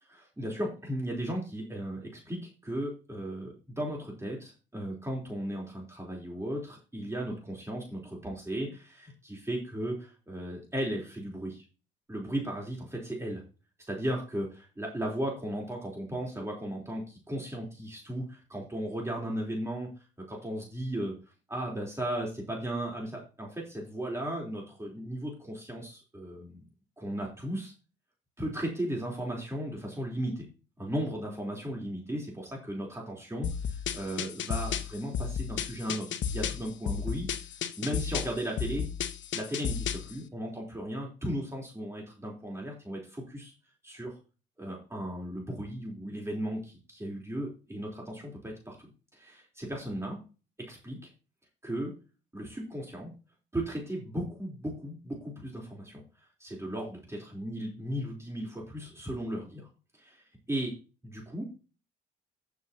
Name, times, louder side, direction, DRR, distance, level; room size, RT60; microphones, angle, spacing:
voice 1, 0.1-11.6 12.1-13.4 13.9-19.9 20.2-21.1 21.5-26.6 27.0-27.7 28.4-30.4 30.8-37.3 37.8-38.9 39.3-43.5 43.8-44.1 44.6-50.2 50.7-51.0 51.6-51.9 52.3-53.1 53.5-56.0 56.4-57.0 57.3-59.7 60.0-60.8 61.0-61.4, right 1 dB, 15° right, -2 dB, 3.8 m, -36 dB
sound 1, 33.4-40.1, left 8 dB, 70° left, 1.1 m, -33 dB
14.0 x 7.0 x 2.9 m, 0.32 s
cardioid pair, 90°, 20 cm